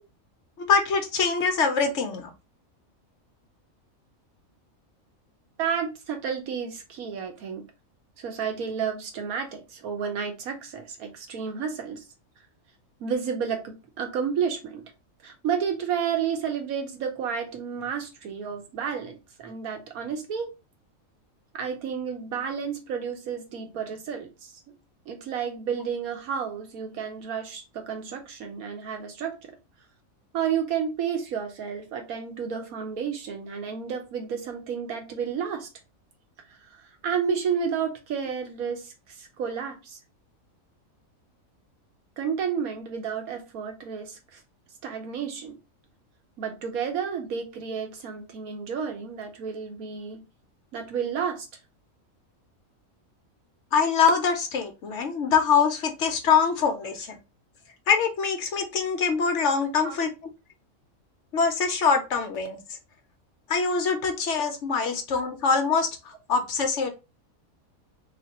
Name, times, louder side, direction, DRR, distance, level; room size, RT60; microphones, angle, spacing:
voice 1, 0.6-2.3 53.7-57.2 57.9-60.1 61.3-62.6 63.5-66.9, left 5 dB, 60° left, 1.0 m, -24 dB
voice 2, 5.6-7.6 8.2-12.0 13.0-14.8 15.2-20.5 21.5-24.5 25.1-29.5 30.3-35.7 36.7-40.0 42.2-44.4 44.8-45.5 46.4-50.2 50.7-51.5 59.8-60.0 64.8-64.9, right 7 dB, 90° right, 1.3 m, -31 dB
3.3 x 3.1 x 2.8 m
omnidirectional pair, 1.5 m